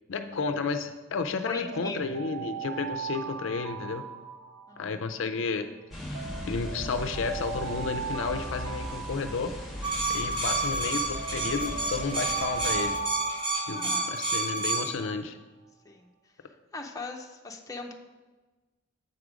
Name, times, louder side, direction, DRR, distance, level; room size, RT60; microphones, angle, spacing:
voice 1, 0.1-4.0 4.8-5.7 6.5-9.6 10.1-12.9 13.7-15.4, left 4 dB, 65° left, 8 dB, 0.5 m, -32 dB
voice 2, 1.4-2.0 4.7-5.0 13.7-14.3 15.8-16.1 16.7-18.0, left 3 dB, 15° left, 2 dB, 0.6 m, -40 dB
Alarm, 1.5-5.6 6.1-10.6 11.1-14.9, right 8 dB, 70° right, 0.5 m, -40 dB
sound 1, 5.9-13.0, equal, ahead, 1.4 m, -39 dB
sound 2, 9.8-14.9, right 2 dB, 25° right, 1.1 m, -29 dB
7.9 x 4.8 x 5.1 m, 1.2 s
head